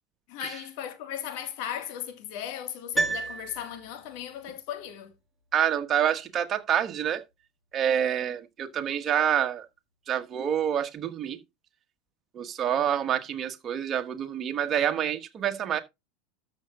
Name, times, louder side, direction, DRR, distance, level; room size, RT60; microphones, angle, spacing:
voice 1, 0.3-5.1, left 10 dB, 60° left, 1.8 m, -37 dB
Piano, 2.9-4.2 4.5-4.6, right 3 dB, 5° left, 6.7 m, -30 dB
voice 2, 5.5-7.2 7.7-9.6 10.1-11.4 12.3-15.8, right 9 dB, 35° right, 1.5 m, -27 dB
13.5 x 6.6 x 2.5 m
hypercardioid pair, 85°, 0 cm